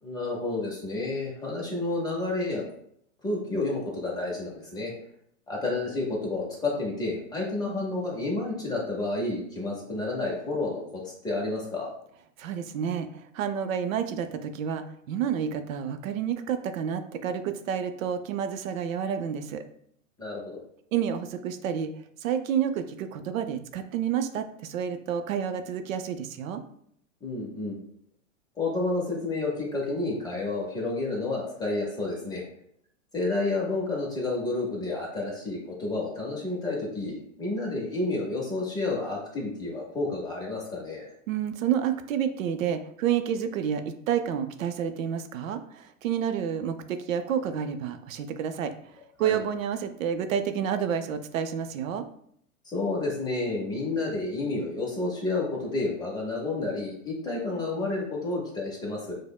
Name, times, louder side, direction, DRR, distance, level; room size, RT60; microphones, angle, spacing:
voice 1, 0.0-2.6 3.2-4.9 5.5-11.9 20.2-20.4 27.2-27.8 28.6-32.4 33.1-41.1 49.2-49.4 52.6-59.1, left 2 dB, 10° left, -3 dB, 0.5 m, -30 dB
voice 2, 12.4-19.6 20.9-21.9 22.2-26.6 41.3-52.1, right 8 dB, 80° right, 9 dB, 0.5 m, -29 dB
5.0 x 2.1 x 2.2 m, 0.69 s
hypercardioid pair, 135°, 40 cm